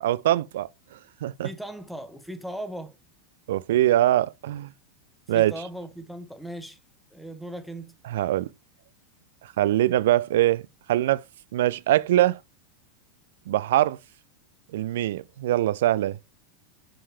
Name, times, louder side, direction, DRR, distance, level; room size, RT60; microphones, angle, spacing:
voice 1, 0.0-1.5 3.5-4.7 5.3-5.5 8.1-8.5 9.6-11.2 11.5-12.4 13.5-14.0 14.7-16.2, right 14 dB, 60° right, 0.4 m, -23 dB
voice 2, 1.4-2.9 5.3-6.8 7.1-7.9, right 1 dB, ahead, 1.3 m, -37 dB
7.6 x 4.6 x 3.2 m
figure-of-eight pair, 85°, 0 cm